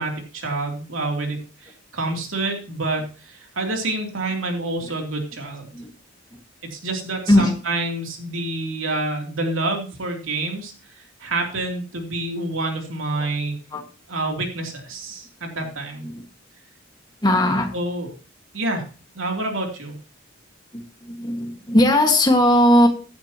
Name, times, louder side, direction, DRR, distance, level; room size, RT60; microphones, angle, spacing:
voice 1, 0.0-5.7 6.7-13.5 14.1-16.1 17.7-18.1 18.5-18.9 19.1-20.0, right 2 dB, 75° right, 2 dB, 3.0 m, -28 dB
voice 2, 17.2-17.7 20.7-22.9, left 1 dB, 20° left, 4 dB, 1.7 m, -18 dB
15.0 x 10.5 x 3.0 m, 0.35 s
head